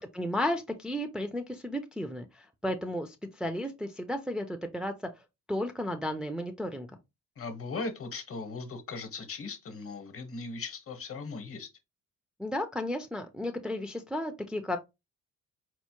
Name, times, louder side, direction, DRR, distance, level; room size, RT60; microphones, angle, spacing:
voice 1, 0.1-4.9 5.5-6.9 12.4-14.8, left 1 dB, 5° right, 0.5 m, -33 dB
voice 2, 7.4-11.7, left 4 dB, 50° left, 0.9 m, -38 dB
4.4 x 2.1 x 2.9 m
cardioid pair, 90°, 30 cm